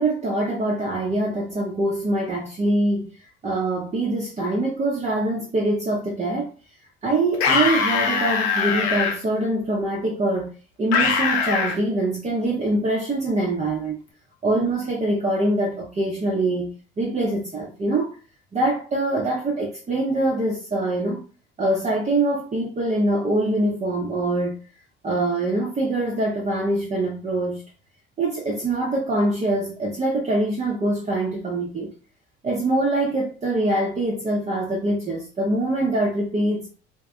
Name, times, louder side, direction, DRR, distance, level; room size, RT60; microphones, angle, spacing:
voice 1, 0.0-3.1 3.4-6.5 7.0-10.5 10.8-14.0 14.4-16.7 17.0-18.1 18.5-21.2 21.6-24.5 25.0-27.6 28.2-31.9 32.4-36.7, right 2 dB, 20° right, 0.6 m, -24 dB
sound 1, 7.3-9.1 10.9-11.8, left 5 dB, 75° left, 0.8 m, -22 dB
2.6 x 2.4 x 2.2 m
hypercardioid pair, 70°, 33 cm